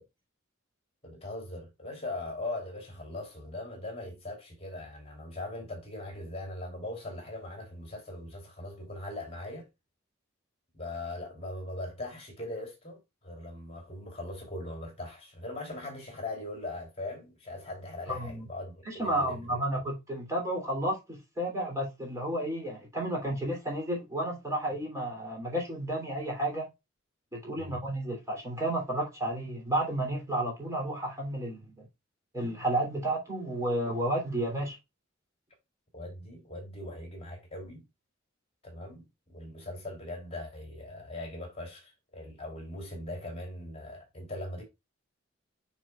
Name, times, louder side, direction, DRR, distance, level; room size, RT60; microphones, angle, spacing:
voice 1, 1.0-9.7 10.7-19.9 27.5-27.8 35.9-37.8 38.6-44.6, left 2 dB, 30° left, 3.0 m, -40 dB
voice 2, 18.1-18.4 18.8-26.7 27.3-31.8 32.3-34.8, right 1 dB, 15° right, 3.0 m, -32 dB
9.3 x 4.4 x 2.4 m
head